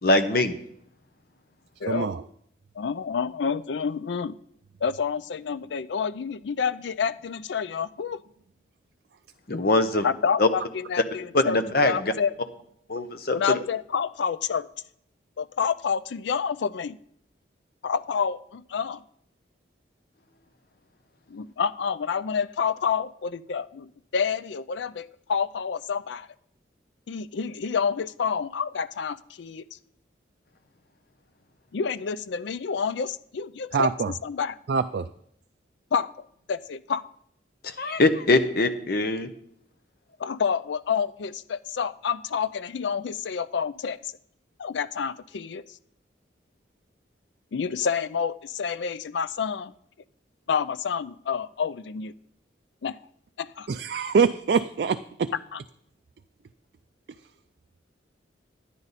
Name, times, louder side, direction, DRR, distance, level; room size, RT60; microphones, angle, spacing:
voice 1, 0.0-0.5 9.5-10.0 10.4-10.5 11.3-12.1 12.9-13.6 37.6-39.3, left 2 dB, 55° left, 9 dB, 0.8 m, -22 dB
voice 2, 1.8-2.2 33.7-34.1 34.7-35.1 53.7-55.3, right 5 dB, 55° right, 8 dB, 0.3 m, -24 dB
voice 3, 2.8-4.4 4.8-8.2 10.0-12.3 13.3-14.7 15.4-17.0 17.8-19.0 21.3-26.3 27.1-29.6 31.7-33.9 34.2-34.5 35.9-36.1 36.5-37.0 40.2-44.1 44.6-45.6 47.5-49.7 50.5-52.1 52.8-53.0 53.4-53.7, left 6 dB, 70° left, 16 dB, 0.4 m, -28 dB
11.0 x 10.0 x 4.1 m, 0.71 s
head